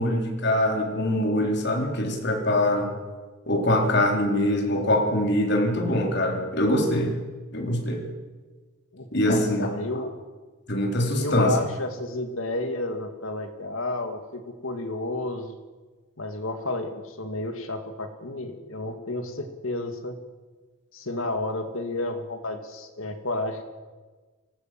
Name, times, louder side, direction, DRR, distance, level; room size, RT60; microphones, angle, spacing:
voice 1, 0.0-2.9 3.5-7.1 7.5-8.0 9.1-9.7 10.7-11.5, left 1 dB, 55° left, 1 dB, 3.9 m, -23 dB
voice 2, 8.9-10.1 11.1-15.6 16.2-20.2 20.9-23.6, left 2 dB, 75° left, 6 dB, 2.4 m, -31 dB
24.5 x 18.5 x 7.7 m, 1.3 s
head